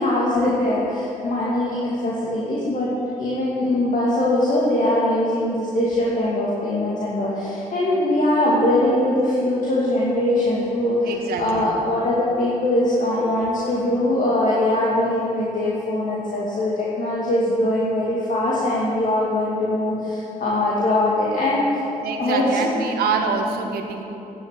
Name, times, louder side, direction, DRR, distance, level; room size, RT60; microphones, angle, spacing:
voice 1, 0.0-2.9 3.2-11.1 11.4-21.7 22.2-22.7, left 1 dB, 55° left, -6 dB, 2.3 m, -21 dB
voice 2, 11.0-11.8 22.0-24.0, right 4 dB, 85° right, 3 dB, 1.0 m, -25 dB
8.6 x 7.9 x 8.9 m, 3.0 s
supercardioid pair, 60°, 16 cm